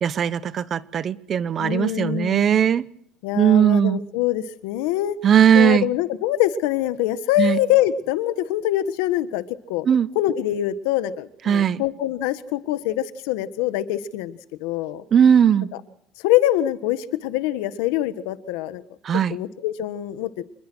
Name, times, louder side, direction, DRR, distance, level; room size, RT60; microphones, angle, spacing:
voice 1, 0.0-2.8 3.3-4.0 5.2-5.9 7.4-7.6 9.9-10.1 11.5-11.8 15.1-15.7 19.0-19.4, right 8 dB, 30° right, 0.8 m, -18 dB
voice 2, 1.6-2.5 3.2-5.2 5.5-9.9 10.1-15.0 15.7-15.8 16.2-18.8 19.3-20.4, left 13 dB, 90° left, 1.5 m, -24 dB
27.0 x 21.0 x 6.3 m
cardioid pair, 155°, 0 cm